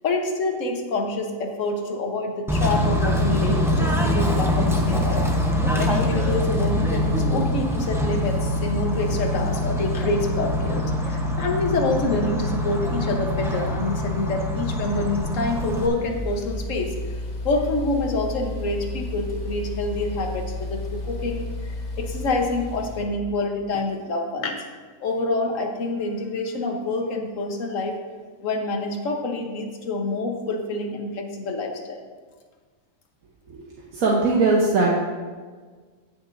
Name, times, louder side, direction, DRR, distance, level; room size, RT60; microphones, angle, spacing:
voice 1, 0.0-5.3 5.7-16.9 17.4-24.6 25.0-28.0 28.4-32.0, left 2 dB, 65° left, 3 dB, 1.4 m, -27 dB
Bird / Train, 2.5-15.9, left 1 dB, 5° right, 0.6 m, -24 dB
sound 1, 13.3-23.0, left 2 dB, 35° left, 0.8 m, -33 dB
voice 2, 33.9-34.9, right 3 dB, 80° right, -4 dB, 1.4 m, -19 dB
17.0 x 6.1 x 2.6 m, 1.5 s
omnidirectional pair, 1.4 m